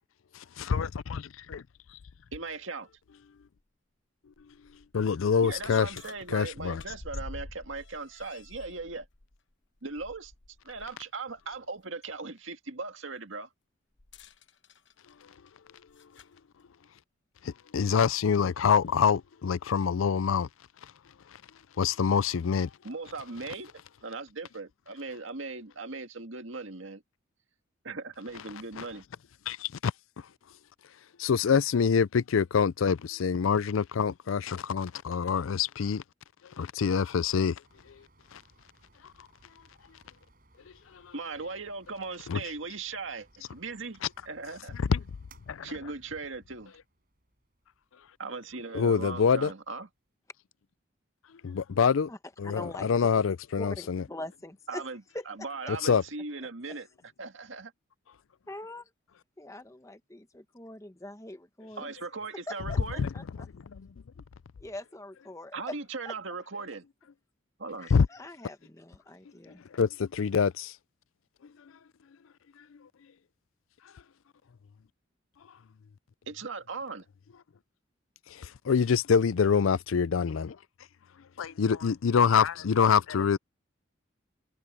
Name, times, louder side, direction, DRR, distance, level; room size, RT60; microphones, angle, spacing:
voice 1, 0.7-1.6 4.9-5.9 6.3-6.8 17.4-20.5 21.8-22.7 28.8-28.9 29.5-29.9 31.2-36.0 36.6-37.6 38.3-38.4 40.9-41.1 42.3-42.4 44.9-45.0 45.5-45.7 48.7-49.5 51.4-52.1 52.4-54.0 55.8-56.0 63.0-63.1 63.4-63.9 67.9-68.1 69.7-70.8 78.3-80.6 81.4-83.4, left 6 dB, 85° left, 0.5 m, -26 dB
voice 2, 2.3-2.9 5.4-9.1 9.8-10.3 10.6-13.5 22.8-23.7 24.0-27.0 27.8-29.0 41.1-44.7 45.6-46.7 48.2-49.9 54.7-56.9 57.2-57.7 61.8-63.0 65.5-66.9 67.6-67.9 76.3-77.1, right 3 dB, 75° right, 1.9 m, -38 dB
sound 1, 3.0-3.1 3.6-3.7 4.3-11.0 11.4-11.6 14.0-16.4 17.4-17.5 18.3-18.4, left 2 dB, 65° left, 1.2 m, -48 dB
sound 2, 37.6-50.1, right 2 dB, 45° right, 6.9 m, -63 dB
voice 3, 52.4-53.2 53.6-54.8 55.1-55.3 56.7-56.8 58.5-58.9 59.4-61.9 62.5-63.5 64.6-65.7 66.0-66.1 67.8-69.6, left 1 dB, 15° left, 1.0 m, -43 dB
head